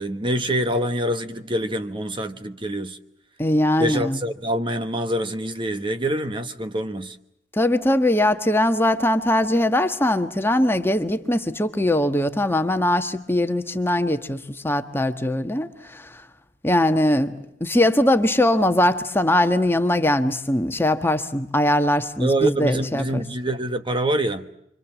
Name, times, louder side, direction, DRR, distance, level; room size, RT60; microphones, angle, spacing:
voice 1, 0.0-3.0 3.8-7.2 22.2-24.5, right 1 dB, 25° right, 1.1 m, -25 dB
voice 2, 3.4-4.2 7.5-16.2 16.6-17.3 17.6-23.2, left 1 dB, 15° left, 1.4 m, -21 dB
29.5 x 24.5 x 7.3 m
head